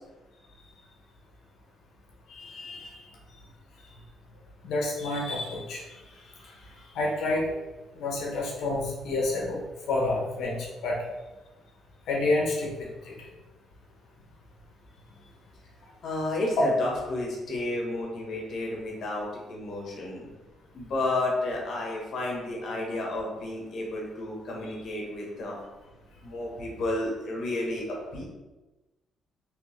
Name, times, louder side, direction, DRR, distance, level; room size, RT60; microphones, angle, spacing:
voice 1, 2.3-3.0 4.6-5.8 6.9-7.5 8.0-9.6 9.9-10.5 10.8-11.0 12.1-12.7 13.0-13.1, left 2 dB, 80° left, -3 dB, 1.0 m, -28 dB
voice 2, 16.0-20.3 20.7-25.5 26.2-28.2, left 2 dB, 65° left, -2 dB, 1.3 m, -31 dB
3.5 x 3.3 x 3.2 m, 1.1 s
cardioid pair, 90°, 0 cm